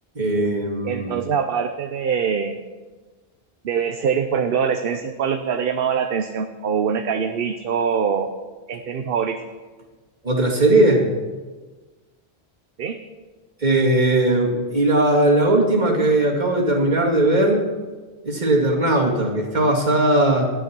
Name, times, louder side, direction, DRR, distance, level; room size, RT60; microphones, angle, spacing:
voice 1, 0.1-1.2 10.2-11.1 13.6-17.6 18.2-20.5, right 1 dB, 45° right, -2 dB, 2.4 m, -18 dB
voice 2, 0.8-2.6 3.6-8.3 8.7-9.4 12.8-13.0, right 7 dB, 60° right, 6 dB, 0.9 m, -23 dB
12.5 x 10.0 x 6.1 m, 1.3 s
omnidirectional pair, 1.1 m